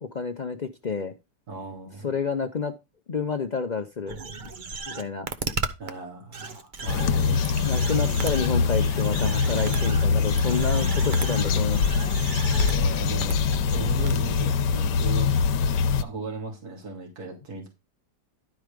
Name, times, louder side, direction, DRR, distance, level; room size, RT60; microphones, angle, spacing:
voice 1, 0.0-1.1 2.0-2.7 3.1-4.2 4.9-5.3 7.6-11.8, left 5 dB, 65° left, 6 dB, 0.4 m, -29 dB
voice 2, 1.5-2.1 5.8-7.4 9.5-9.8 12.7-15.3 16.0-17.7, right 3 dB, 60° right, 0 dB, 3.4 m, -37 dB
sound 1, 4.1-5.9 6.3-12.8 13.2-13.8 14.1-14.2, right 4 dB, 40° right, 0.7 m, -35 dB
sound 2, 6.9-16.0, left 5 dB, 90° left, 1.3 m, -23 dB
12.0 x 4.7 x 5.2 m, 0.25 s
omnidirectional pair, 1.8 m